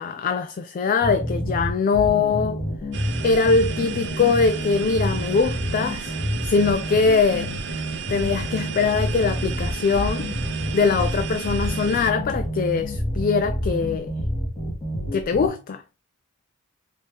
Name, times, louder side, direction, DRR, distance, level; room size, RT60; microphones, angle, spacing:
voice 1, 0.0-2.6 3.2-6.2 6.5-7.8 8.1-10.3 10.7-14.1 15.1-15.8, left 4 dB, 40° left, 0.3 m, -22 dB
sound 1, 1.0-15.5, equal, 20° left, 1.7 m, -28 dB
sound 2, 2.9-12.1, right 7 dB, 55° right, 0.6 m, -34 dB
4.7 x 2.8 x 3.3 m
head